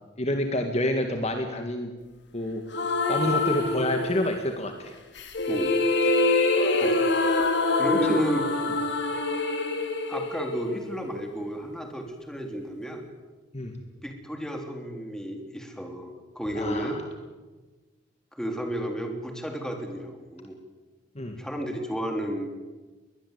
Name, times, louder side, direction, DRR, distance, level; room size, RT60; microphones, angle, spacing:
voice 1, 0.2-1.9 2.3-2.6 3.1-4.9 8.1-8.2 13.5-13.7 16.6-17.0 21.2-21.4, left 1 dB, 35° left, 5 dB, 1.9 m, -28 dB
sound 1, 2.7-4.4 5.1-11.2, left 2 dB, 65° left, 3.0 m, -25 dB
voice 2, 5.5-5.9 6.6-7.1 7.8-8.5 10.1-13.1 14.0-17.0 18.3-20.6 21.4-22.5, equal, 5° left, 3 dB, 3.3 m, -32 dB
22.0 x 20.0 x 8.2 m, 1.2 s
head